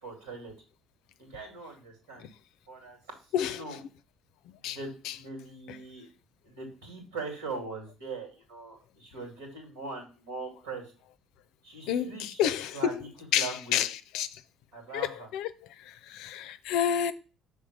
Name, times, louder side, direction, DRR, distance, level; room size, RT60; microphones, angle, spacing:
voice 1, 0.0-0.5 1.2-2.3 2.7-3.0 3.5-3.8 4.6-6.1 6.4-10.9 11.6-12.4 12.7-13.8 14.7-15.3, right 3 dB, 80° right, 2.6 m, -41 dB
voice 2, 3.3-3.6 4.6-4.8 5.0-5.1 11.9-13.0 13.3-13.9 14.1-14.3 14.9-15.1 15.3-15.5 16.1-17.1, left 9 dB, 70° left, 0.5 m, -28 dB
6.3 x 3.6 x 5.0 m
hypercardioid pair, 55°, 0 cm